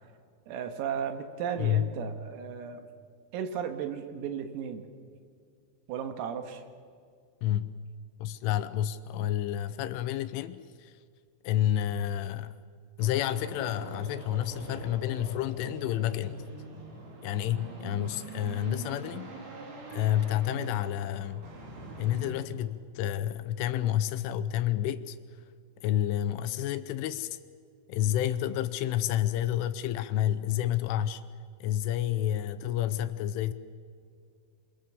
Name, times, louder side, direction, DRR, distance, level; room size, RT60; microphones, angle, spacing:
voice 1, 0.5-2.9 3.3-4.9 5.9-6.6, right 8 dB, 85° right, 4.3 m, -35 dB
voice 2, 1.6-1.9 7.4-7.7 8.2-11.0 11.4-12.6 13.0-16.4 17.2-19.3 19.9-21.5 22.0-25.2 25.8-27.4 27.9-31.2 31.6-33.5, left 12 dB, 80° left, 3.1 m, -29 dB
sound 1, 13.0-22.3, right 2 dB, 55° right, 5.6 m, -43 dB
27.5 x 23.0 x 7.5 m
omnidirectional pair, 6.0 m